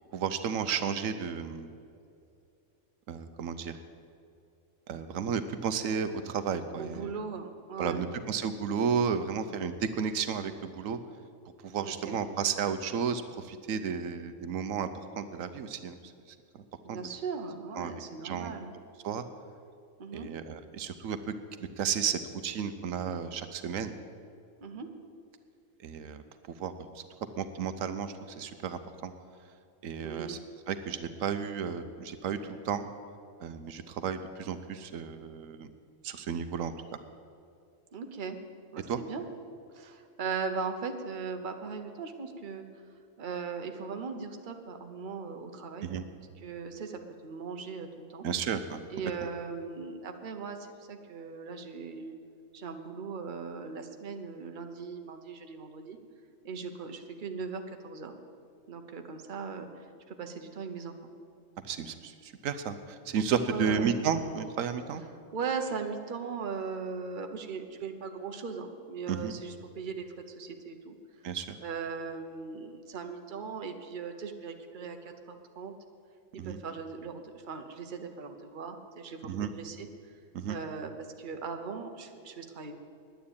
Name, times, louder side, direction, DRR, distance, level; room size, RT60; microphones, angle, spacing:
voice 1, 0.1-1.7 3.1-3.8 4.9-7.1 7.8-11.0 11.6-14.9 15.2-16.0 16.3-16.6 16.9-17.0 17.8-17.9 18.2-18.5 19.0-19.2 20.1-21.2 21.8-23.9 25.8-27.0 27.4-29.1 29.8-30.4 30.7-32.4 32.6-32.9 33.4-35.7 36.0-36.7 38.9-39.0 45.8-46.1 48.2-48.8 49.2-49.3 61.6-65.0 69.1-69.3 71.2-71.6 76.4-76.6 79.2-79.5 80.3-80.6, right 7 dB, 80° right, 10 dB, 1.1 m, -33 dB
voice 2, 6.8-8.0 11.8-12.2 16.8-18.7 20.0-20.3 24.6-24.9 30.0-30.4 37.9-38.4 38.7-39.2 39.7-42.6 43.2-45.9 46.4-48.2 48.9-52.1 52.5-56.0 56.4-58.1 58.7-61.1 63.5-63.9 65.3-70.9 71.6-75.7 76.3-79.9 80.5-82.7, right 5 dB, 40° right, 5 dB, 1.0 m, -39 dB
10.0 x 9.6 x 8.6 m, 2.5 s
omnidirectional pair, 1.4 m